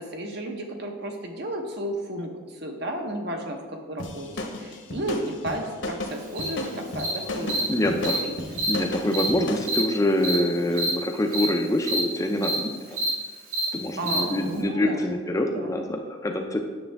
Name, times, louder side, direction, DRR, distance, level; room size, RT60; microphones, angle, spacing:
voice 1, 0.0-7.7 8.2-8.5 14.0-15.0 15.3-15.7, right 1 dB, 55° right, 3 dB, 1.0 m, -33 dB
sound 1, 4.0-9.7, left 2 dB, 55° left, 0.9 m, -34 dB
Cricket, 6.4-6.5 7.0-7.1 7.5-7.6 8.0-8.2 8.5-8.7 9.1-9.3 9.6-9.8 10.2-10.3 10.7-10.9 11.3-11.4 11.8-12.0 12.4-12.5 12.9-13.1 13.5-13.6 14.0-14.2, right 1 dB, 80° right, 2.1 m, -26 dB
voice 2, 7.3-8.2 8.7-12.8 13.7-16.6, left 1 dB, 15° left, 3 dB, 0.4 m, -25 dB
9.4 x 6.5 x 3.4 m, 1.5 s
head